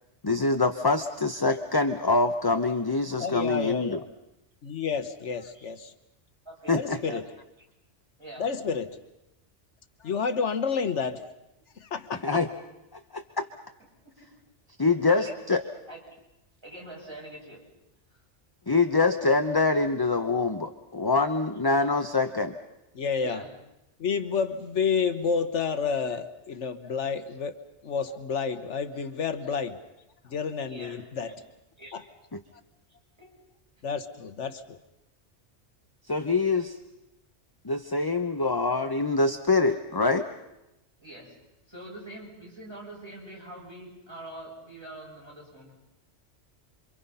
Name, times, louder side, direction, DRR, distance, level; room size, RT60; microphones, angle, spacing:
voice 1, 0.2-4.0 6.7-7.0 12.2-12.5 12.9-13.5 14.8-15.6 18.7-22.5 32.3-32.4 36.1-36.8 37.6-40.3, left 3 dB, 20° left, 7 dB, 0.8 m, -25 dB
voice 2, 3.2-4.1 4.6-5.9 6.7-7.2 8.4-9.0 10.0-11.2 11.8-12.4 22.9-23.4 24.0-27.5 27.8-29.8 30.2-31.3 31.9-32.0 33.8-34.8, left 6 dB, 75° left, 9 dB, 1.4 m, -30 dB
voice 3, 6.5-7.2 8.2-8.4 14.0-14.3 15.1-15.3 15.8-16.0 16.6-17.6 18.1-18.2 23.2-23.5 30.7-31.0 31.8-31.9 33.2-33.4 33.8-33.9 41.0-41.3 41.7-45.7, right 1 dB, 20° right, -3 dB, 7.0 m, -44 dB
27.5 x 25.5 x 5.6 m, 0.91 s
omnidirectional pair, 1.2 m